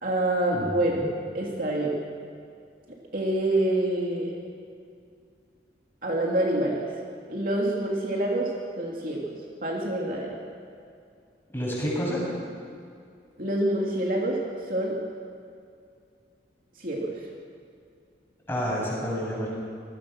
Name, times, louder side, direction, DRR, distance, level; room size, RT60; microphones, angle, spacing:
voice 1, 0.0-1.0 1.3-1.9 3.1-4.4 6.0-6.8 7.3-9.3 9.6-10.4 13.4-15.0 16.8-17.2, right 1 dB, 50° right, -2 dB, 3.1 m, -26 dB
voice 2, 0.5-1.1 11.5-12.2 18.5-19.5, equal, 15° left, -5 dB, 7.9 m, -29 dB
26.0 x 20.0 x 6.4 m, 2.4 s
head